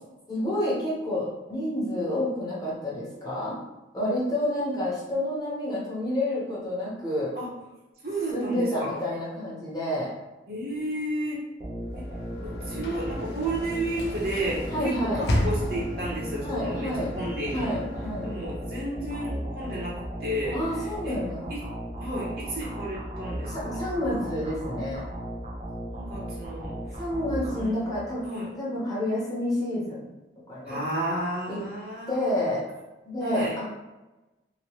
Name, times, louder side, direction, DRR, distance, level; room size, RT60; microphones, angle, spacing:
voice 1, 0.3-3.6 3.9-7.3 8.3-10.1 14.7-15.2 16.4-17.1 17.5-18.3 20.5-21.5 23.5-25.0 27.0-28.2 28.6-30.1 30.5-30.8 31.5-31.6 32.1-32.6 33.0-33.6, left 1 dB, 20° left, -7 dB, 0.9 m, -29 dB
voice 2, 8.0-8.9 10.5-11.4 11.9-12.0 12.4-17.9 18.2-19.9 20.2-20.6 21.0-21.2 21.5-21.6 22.0-23.8 25.9-27.0 27.5-27.8 28.2-28.5 30.7-32.4 33.2-33.6, right 1 dB, 55° right, -4 dB, 0.8 m, -32 dB
sound 1, 11.6-28.2, equal, 35° right, 0.4 m, -36 dB
Sliding door / Slam, 11.9-18.9, left 1 dB, 65° left, 0.5 m, -34 dB
2.9 x 2.1 x 2.9 m, 1.1 s
head